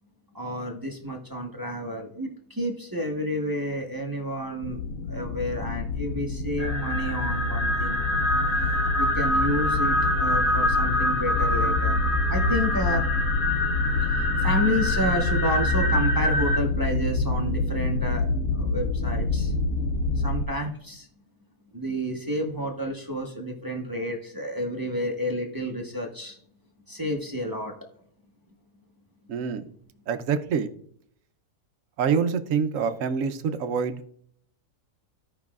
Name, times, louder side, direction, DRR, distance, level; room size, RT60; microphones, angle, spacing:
voice 1, 0.3-4.8 5.1-8.0 8.6-12.0 12.3-13.0 14.0-18.3 18.5-19.5 20.2-21.1 21.7-26.4 26.9-27.7, equal, 15° right, 0 dB, 0.9 m, -30 dB
sound 1, 4.6-20.4, left 2 dB, 65° left, 0.9 m, -27 dB
sound 2, 6.6-16.6, left 1 dB, 40° left, 1.0 m, -26 dB
voice 2, 29.3-29.7 30.1-30.7 32.0-34.0, right 6 dB, 60° right, 9 dB, 1.0 m, -26 dB
15.5 x 5.6 x 2.4 m, 0.65 s
omnidirectional pair, 1.7 m